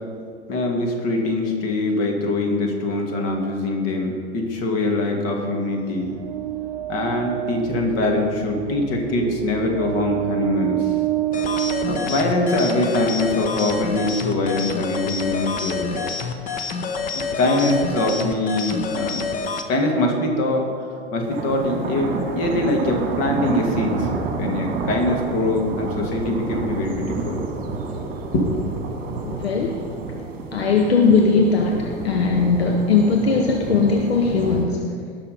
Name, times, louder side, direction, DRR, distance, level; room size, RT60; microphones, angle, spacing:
voice 1, 0.5-6.1 6.9-11.0 11.9-16.1 17.1-19.2 19.7-20.7 21.1-24.1 24.4-27.4 28.3-28.5, left 2 dB, 40° left, 2 dB, 2.3 m, -23 dB
sound 1, 6.0-12.9, right 14 dB, 50° right, 0.7 m, -27 dB
sound 2, 11.3-19.7, left 4 dB, 25° left, 0.8 m, -28 dB
sound 3, 21.2-34.7, right 4 dB, 25° right, 1.8 m, -29 dB
voice 2, 29.2-29.9 30.5-34.9, left 4 dB, 70° left, 3 dB, 1.0 m, -19 dB
18.0 x 6.3 x 5.2 m, 2.1 s
figure-of-eight pair, 90°, 32 cm